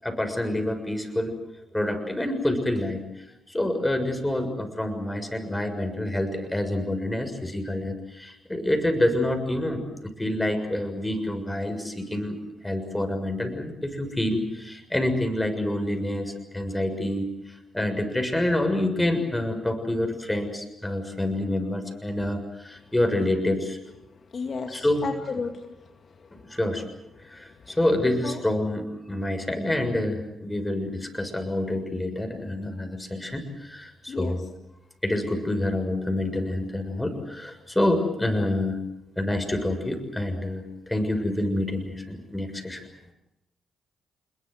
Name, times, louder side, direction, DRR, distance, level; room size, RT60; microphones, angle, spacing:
voice 1, 0.0-1.3 1.7-3.0 3.5-12.4 12.6-17.3 17.7-23.8 24.7-25.1 26.5-26.8 27.2-34.5 35.0-38.8 39.2-42.8, left 1 dB, 15° left, 6 dB, 6.9 m, -27 dB
voice 2, 24.3-25.5 27.7-27.8 28.2-28.4 34.1-34.4, left 5 dB, 50° left, 4 dB, 2.2 m, -32 dB
27.0 x 22.5 x 7.9 m, 0.88 s
hypercardioid pair, 40°, 0 cm